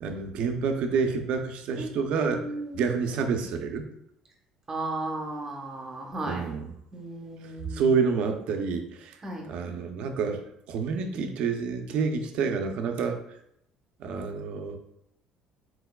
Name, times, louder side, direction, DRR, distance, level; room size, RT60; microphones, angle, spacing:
voice 1, 0.0-2.4 2.7-3.9 6.3-6.7 7.7-9.2 9.5-10.4 10.7-13.2 14.0-14.8, right 5 dB, 65° right, 5 dB, 0.6 m, -28 dB
voice 2, 2.3-2.9 4.7-6.5 6.9-7.9 9.2-9.4, right 2 dB, 25° right, 1 dB, 0.8 m, -35 dB
4.5 x 4.0 x 2.2 m, 0.77 s
cardioid pair, 130°, 2 cm